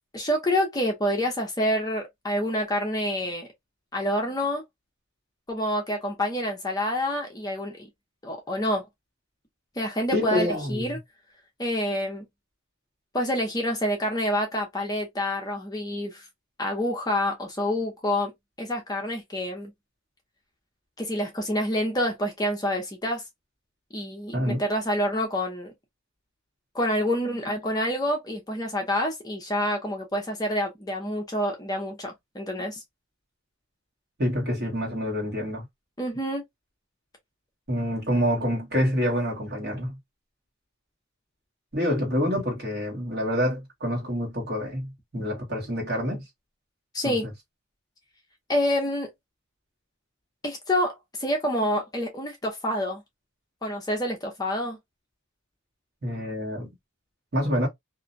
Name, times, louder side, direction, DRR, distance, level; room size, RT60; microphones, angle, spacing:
voice 1, 0.1-3.5 3.9-4.6 5.5-7.9 8.2-8.9 9.8-11.0 11.6-12.3 13.1-16.2 16.6-18.3 18.6-19.7 21.0-23.2 23.9-25.7 26.7-32.8 36.0-36.4 46.9-47.3 48.5-49.1 50.4-50.9 51.2-53.0 53.6-54.8, equal, 20° left, 0.5 m, -27 dB
voice 2, 10.1-11.0 24.3-24.6 34.2-35.7 37.7-40.0 41.7-46.2 47.0-47.3 56.0-56.7 57.3-57.7, equal, 50° right, 1.2 m, -27 dB
2.5 x 2.1 x 2.5 m
head